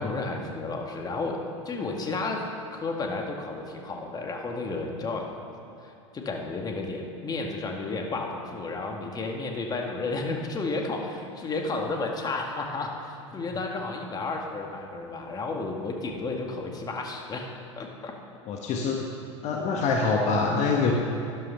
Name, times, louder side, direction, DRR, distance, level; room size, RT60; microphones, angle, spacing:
voice 1, 0.0-5.4 5.8-17.5 17.8-18.1, left 3 dB, 25° left, 2 dB, 1.9 m, -32 dB
voice 2, 18.5-19.0 19.4-20.9, left 4 dB, 45° left, 1 dB, 1.4 m, -25 dB
12.5 x 11.5 x 5.6 m, 2.5 s
hypercardioid pair, 90°, 16 cm